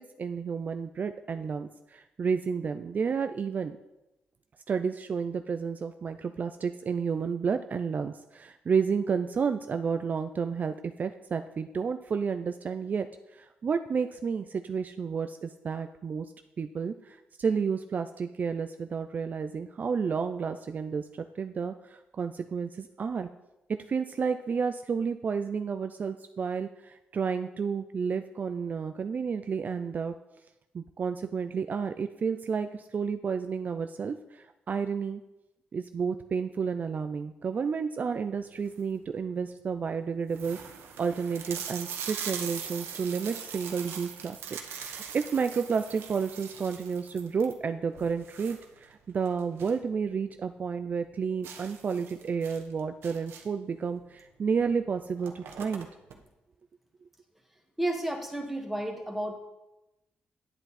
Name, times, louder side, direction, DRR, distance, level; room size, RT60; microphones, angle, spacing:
voice 1, 0.2-3.8 4.7-16.3 16.6-23.3 23.7-30.1 30.7-35.2 35.7-40.7 41.0-44.6 45.1-55.9, right 6 dB, 45° right, 8 dB, 0.4 m, -31 dB
sound 1, 38.5-39.0 39.6-39.7 39.9-40.0 40.3-49.9 50.2-50.3 50.7-50.8 51.4-53.7 54.6-54.7 55.0-56.2, right 7 dB, 90° right, 1.1 m, -41 dB
voice 2, 57.8-59.4, right 1 dB, 5° right, 2 dB, 1.7 m, -32 dB
9.9 x 8.0 x 4.2 m, 0.96 s
cardioid pair, 90°, 4 cm